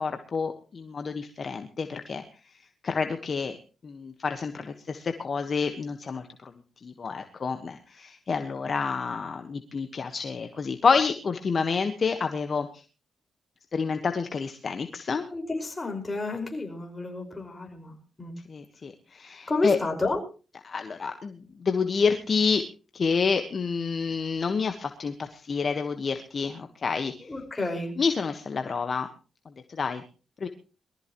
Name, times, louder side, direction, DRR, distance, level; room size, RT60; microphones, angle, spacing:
voice 1, 0.0-2.2 2.8-3.6 3.8-6.5 6.8-12.8 13.7-15.3 18.5-19.8 20.6-22.6 22.9-27.3 28.0-29.1 29.7-30.0 30.4-30.5, left 5 dB, 45° left, 7 dB, 1.4 m, -28 dB
voice 2, 15.3-17.9 18.2-18.3 19.5-20.2 27.3-27.9, left 3 dB, 25° left, 3 dB, 5.3 m, -30 dB
22.5 x 14.0 x 3.1 m, 0.34 s
cardioid pair, 90°, 0 cm